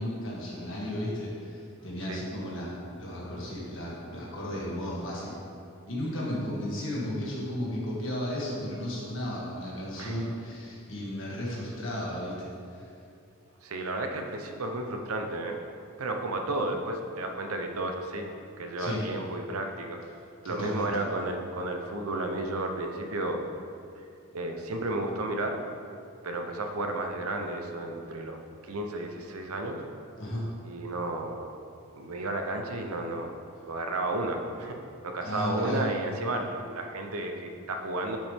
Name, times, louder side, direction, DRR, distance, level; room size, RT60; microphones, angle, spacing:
voice 1, 0.0-5.3 5.9-12.9 18.8-19.0 20.4-20.9 30.2-30.5 35.2-35.8, left 1 dB, 55° left, -5 dB, 2.0 m, -34 dB
voice 2, 13.6-15.6 16.0-20.0 20.4-23.4 24.3-25.6 26.2-28.4 28.6-29.8 30.6-31.5 31.9-34.8 35.0-38.2, right 2 dB, 75° right, 4 dB, 0.8 m, -32 dB
9.8 x 5.7 x 3.6 m, 2.5 s
head